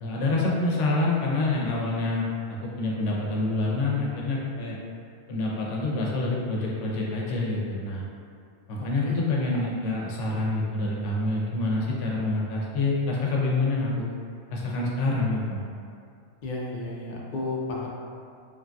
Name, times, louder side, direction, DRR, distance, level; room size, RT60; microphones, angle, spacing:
voice 1, 0.0-4.8 5.3-8.0 8.7-14.1 14.5-15.7, left 2 dB, 75° left, -3 dB, 0.9 m, -27 dB
voice 2, 8.8-9.2 16.4-17.9, left 2 dB, 60° left, -3 dB, 0.5 m, -33 dB
3.2 x 2.5 x 2.2 m, 2.4 s
omnidirectional pair, 1.3 m